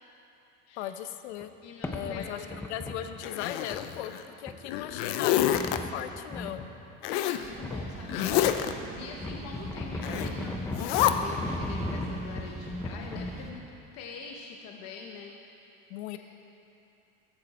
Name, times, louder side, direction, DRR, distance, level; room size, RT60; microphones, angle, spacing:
voice 1, 0.8-1.5 1.9-4.1 4.4-6.7 13.0-13.3 15.9-16.2, left 11 dB, 85° left, 9 dB, 1.0 m, -38 dB
sound 1, 1.4-1.5 1.8-3.1 3.5-3.9 4.5-4.6 5.4-6.7 7.6-8.5 9.1-13.4, left 2 dB, 10° left, 0.8 m, -36 dB
voice 2, 1.6-2.5 4.9-5.5 7.1-13.6 13.9-15.3, left 5 dB, 50° left, 0 dB, 1.2 m, -44 dB
Zipper (clothing), 3.2-4.2 4.7-5.8 7.0-7.4 8.1-8.7 10.0-10.3 10.7-11.1, left 12 dB, 65° left, 0.8 m, -27 dB
sound 2, 7.4-13.5, right 4 dB, 20° right, 1.2 m, -43 dB
15.5 x 15.0 x 4.3 m, 2.8 s
cardioid pair, 155°, 33 cm